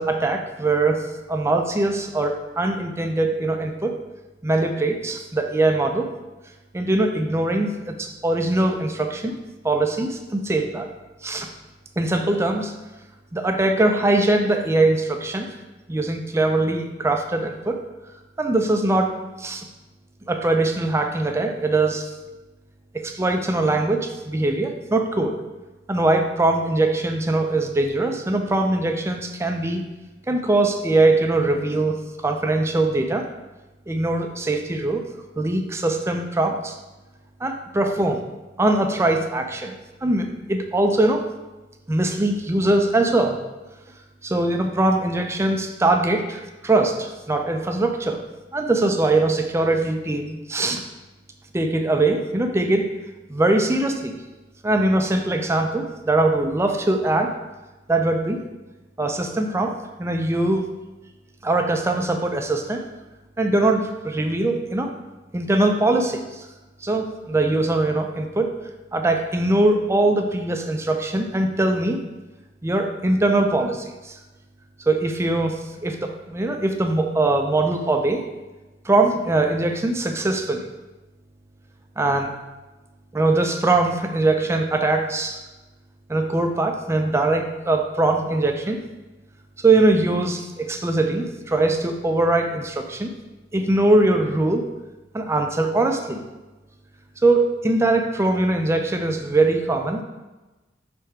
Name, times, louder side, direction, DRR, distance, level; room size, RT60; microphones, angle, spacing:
voice 1, 0.0-4.0 4.4-6.1 6.7-9.3 9.6-10.9 11.2-11.5 12.0-12.7 13.3-15.5 15.9-17.8 18.4-19.1 19.4-19.6 20.3-22.1 22.9-25.4 25.9-29.8 30.3-33.3 33.9-35.0 35.4-36.8 37.4-38.3 38.6-39.7 40.0-41.2 41.9-43.4 44.2-48.2 48.5-50.8 51.5-52.9 53.3-54.2 54.6-57.3 57.9-58.4 59.0-59.7 60.0-60.7 61.4-62.8 63.4-64.9 65.3-66.5 66.8-68.5 68.9-72.0 72.6-74.2 74.9-78.2 78.9-80.7 82.0-82.3 83.1-85.4 86.1-88.8 89.6-93.1 93.5-94.7 95.1-96.2 97.2-100.0, right 2 dB, 15° right, 4 dB, 0.4 m, -21 dB
6.4 x 3.4 x 4.5 m, 1.1 s
head